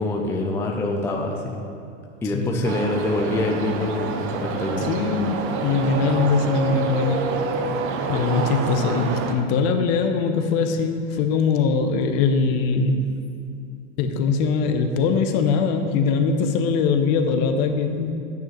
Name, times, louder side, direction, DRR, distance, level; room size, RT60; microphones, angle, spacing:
voice 1, 0.0-1.6 2.2-5.0, left 2 dB, 5° left, 0 dB, 0.5 m, -25 dB
voice 2, 2.3-2.6 4.8-7.4 8.1-13.1 14.0-18.1, left 5 dB, 40° left, 6 dB, 0.8 m, -22 dB
sound 1, 2.6-9.3, right 5 dB, 35° right, 0.7 m, -27 dB
10.0 x 9.4 x 3.2 m, 2.5 s
hypercardioid pair, 125°, 36 cm